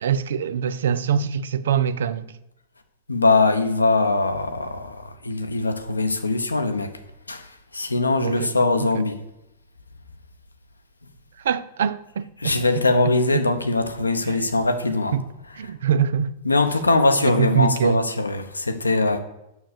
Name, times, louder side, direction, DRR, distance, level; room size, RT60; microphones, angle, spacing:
voice 1, 0.0-2.3 8.2-8.5 8.8-9.0 11.4-13.5 14.2-14.5 15.1-15.3 15.6-16.3 17.2-18.0, right 8 dB, 65° right, 0.4 m, -24 dB
voice 2, 3.1-6.9 7.3-7.5 7.7-9.2 12.4-15.2 16.4-19.2, left 3 dB, 85° left, 0.8 m, -21 dB
7.1 x 6.3 x 6.9 m
figure-of-eight pair, 95°, 0 cm